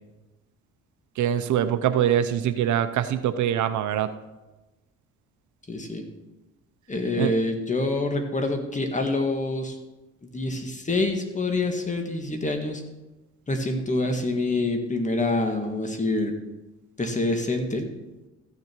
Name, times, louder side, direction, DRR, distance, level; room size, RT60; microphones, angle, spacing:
voice 1, 1.2-4.1 7.2-7.3, right 10 dB, 75° right, 11 dB, 0.7 m, -23 dB
voice 2, 5.7-6.0 6.9-9.8 10.3-12.8 13.5-16.3 17.0-17.9, left 2 dB, 25° left, 5 dB, 1.7 m, -26 dB
14.0 x 6.7 x 4.5 m, 1.1 s
cardioid pair, 90°, 30 cm